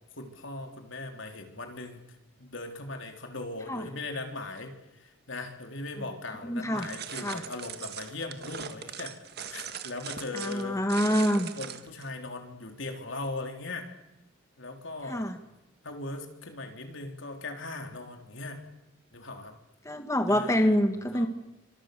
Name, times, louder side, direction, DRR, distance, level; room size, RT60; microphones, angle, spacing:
voice 1, 0.2-2.0 2.4-10.8 11.6-13.9 14.6-15.3 15.8-18.7 19.1-19.5 20.3-20.7 21.1-21.3, left 2 dB, 70° left, 4 dB, 3.9 m, -39 dB
voice 2, 6.4-6.9 7.2-7.4 10.3-11.5 15.1-15.4 19.9-21.3, equal, 15° left, 6 dB, 1.9 m, -26 dB
sound 1, 6.8-12.1, right 8 dB, 50° right, 1.8 m, -40 dB
27.5 x 25.5 x 7.0 m, 0.94 s
head